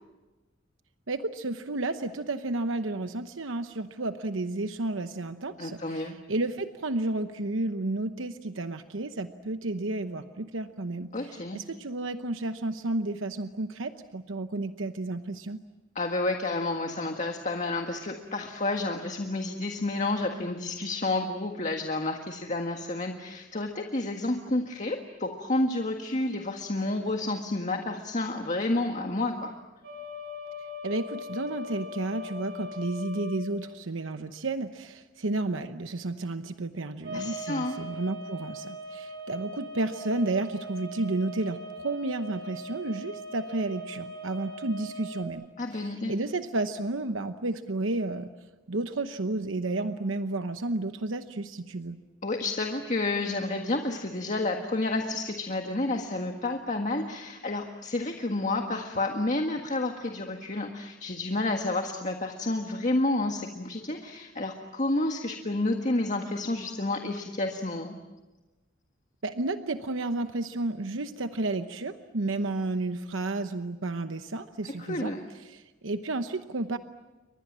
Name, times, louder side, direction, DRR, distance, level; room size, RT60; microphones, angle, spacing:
voice 1, 1.1-15.6 30.8-45.5 45.7-48.3 48.7-52.0 69.2-75.1 75.5-76.8, right 2 dB, 90° right, 9 dB, 1.0 m, -32 dB
voice 2, 5.6-6.2 11.1-11.6 15.9-29.5 37.1-37.8 45.6-46.1 52.2-67.9 74.8-75.2, left 2 dB, 40° left, 3 dB, 1.7 m, -30 dB
sound 1, 29.8-33.4 37.0-45.2, left 1 dB, 60° right, 4.8 m, -40 dB
30.0 x 24.5 x 7.5 m, 1.1 s
head